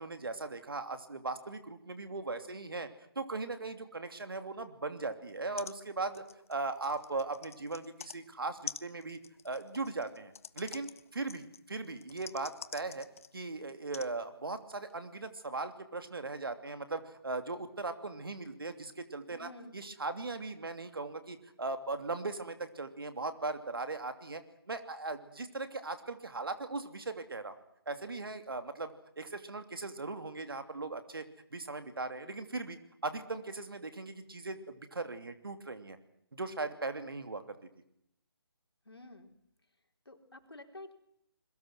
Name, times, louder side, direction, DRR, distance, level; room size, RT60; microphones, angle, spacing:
voice 1, 0.0-2.9 3.1-6.2 6.5-9.2 9.4-13.1 13.3-32.8 33.0-36.0 36.3-37.6, right 3 dB, 65° right, 8 dB, 2.8 m, -39 dB
sound 1, 5.3-5.4 5.6-5.8 6.0-8.2 8.7-13.4 13.9-14.1 14.9-15.0, left 7 dB, 35° left, 0.9 m, -46 dB
voice 2, 19.4-19.8 38.8-39.3 40.1-40.9, left 2 dB, 80° left, 4 dB, 4.4 m, -50 dB
28.5 x 22.0 x 6.2 m, 0.75 s
figure-of-eight pair, 150°, 13 cm